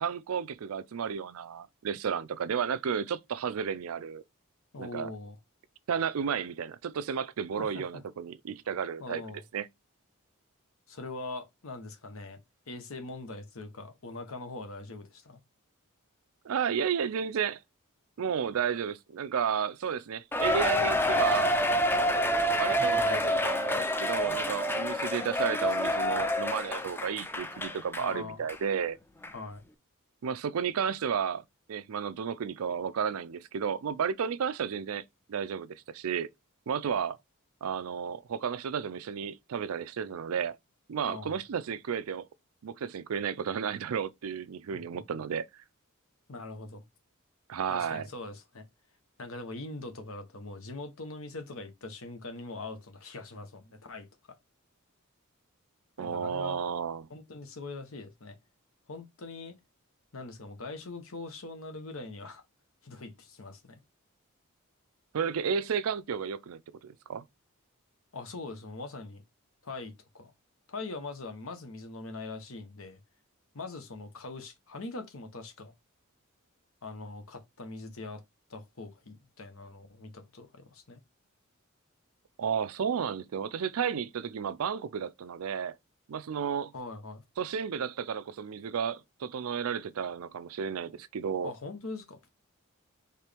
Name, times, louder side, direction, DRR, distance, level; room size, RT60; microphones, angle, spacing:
voice 1, 0.0-4.2 4.8-5.1 5.9-9.7 16.4-17.6 18.2-21.6 22.4-29.0 30.2-31.4 31.7-35.0 35.3-36.3 36.7-37.2 37.6-40.6 40.9-42.3 42.6-45.5 47.5-48.1 56.0-57.1 65.1-67.2 82.4-85.7 86.1-86.7 87.4-91.5, right 7 dB, 75° right, 0.4 m, -32 dB
voice 2, 4.7-5.4 7.6-7.8 9.0-9.4 10.9-12.4 12.7-15.4 22.8-23.3 28.0-28.5 29.3-29.6 41.0-41.4 44.7-44.8 46.3-46.8 47.7-48.6 49.2-54.1 56.0-56.6 57.1-58.4 58.9-59.5 60.1-62.4 62.8-63.8 68.1-69.2 69.6-70.3 70.7-73.0 73.5-75.7 76.8-78.2 78.5-81.0 86.7-87.2 91.4-92.2, left 3 dB, 70° left, 1.1 m, -42 dB
Cheering, 20.3-28.1 28.5-28.6 29.2-29.3, equal, 10° left, 0.5 m, -28 dB
4.4 x 3.3 x 3.4 m
head